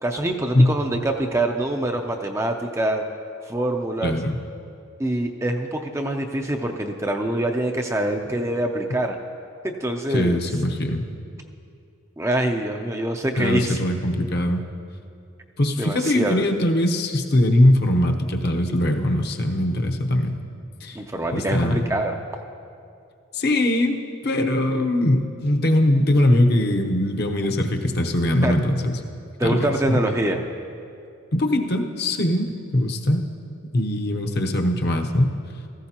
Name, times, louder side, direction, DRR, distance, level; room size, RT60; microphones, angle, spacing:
voice 1, 0.0-3.0 3.5-4.2 5.0-9.2 9.6-10.4 12.2-13.8 15.8-16.4 21.0-22.2 28.4-28.5 29.4-30.4, right 1 dB, 15° right, 3 dB, 0.5 m, -24 dB
voice 2, 4.0-4.4 10.1-11.0 13.4-14.6 15.6-20.4 20.8-21.0 21.3-21.8 23.3-29.0 29.4-30.0 31.3-32.5 32.7-33.2 33.7-35.3, left 1 dB, 50° left, 4 dB, 0.8 m, -21 dB
16.5 x 14.5 x 2.9 m, 2.5 s
head